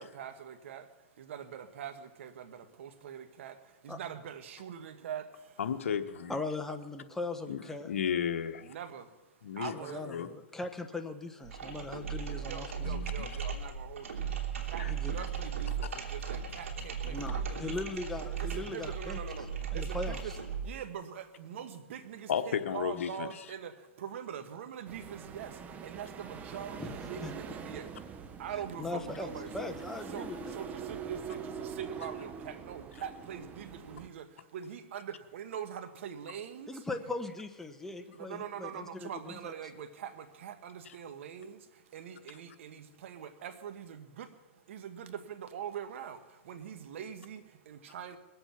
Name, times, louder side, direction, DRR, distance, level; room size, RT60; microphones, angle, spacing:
voice 1, 0.0-5.6 8.6-10.1 12.4-17.8 18.4-20.3 20.6-29.7 30.1-36.8 38.1-48.2, right 8 dB, 70° right, 9 dB, 1.4 m, -43 dB
voice 2, 5.6-6.4 7.5-8.7 9.4-9.7 10.1-10.3 12.8-13.3 14.8-14.9 22.3-23.3, left 8 dB, 80° left, 8 dB, 1.1 m, -33 dB
voice 3, 6.3-7.9 9.7-12.9 14.8-15.2 17.0-19.2 19.7-20.4 26.8-26.9 27.2-27.3 28.8-29.3 29.5-30.6 36.7-39.5, left 3 dB, 5° left, 5 dB, 1.0 m, -39 dB
sound 1, 11.4-20.7, right 7 dB, 85° right, 2.8 m, -37 dB
sound 2, 24.8-34.1, right 6 dB, 20° right, 0.8 m, -43 dB
21.0 x 8.0 x 5.9 m, 1.2 s
hypercardioid pair, 135°, 7 cm